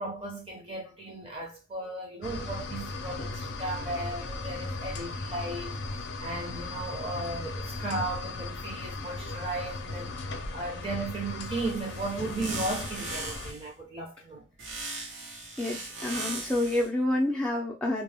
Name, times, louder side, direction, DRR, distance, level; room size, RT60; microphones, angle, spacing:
voice 1, 0.0-5.8 6.2-10.2 10.5-14.5, right 2 dB, 30° right, 0.7 m, -35 dB
sound 1, 2.2-13.5, left 3 dB, 65° left, 0.5 m, -37 dB
sound 2, 11.4-13.7 14.6-16.9, right 2 dB, 75° right, 0.9 m, -38 dB
voice 2, 15.6-18.0, left 1 dB, 5° left, 0.3 m, -28 dB
2.2 x 2.1 x 3.3 m
head